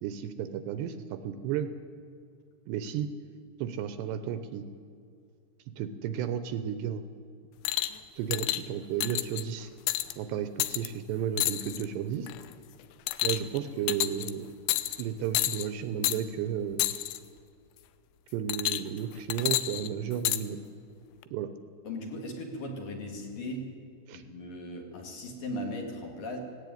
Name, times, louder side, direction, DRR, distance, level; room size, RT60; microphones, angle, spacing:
voice 1, 0.0-1.7 2.7-3.1 3.6-4.6 5.8-7.0 8.2-9.7 10.2-12.3 13.2-14.5 15.0-16.8 18.3-20.6 21.3-21.5 24.1-24.2, right 9 dB, 75° right, 10 dB, 2.8 m, -33 dB
sound 1, 7.7-8.0 8.3-8.6 9.0-9.4 9.9-10.1 10.6-10.9 11.4-11.9 12.3-12.5 13.1-13.6 13.9-14.3 14.7-15.0 15.3-15.7 16.0-16.2 16.8-17.2 18.5-19.0 19.3-20.4 21.2-21.3, left 15 dB, 75° left, 2.6 m, -29 dB
voice 2, 21.8-23.7 24.1-26.4, left 1 dB, 55° left, 1 dB, 3.6 m, -38 dB
17.5 x 17.0 x 9.4 m, 2.3 s
omnidirectional pair, 5.3 m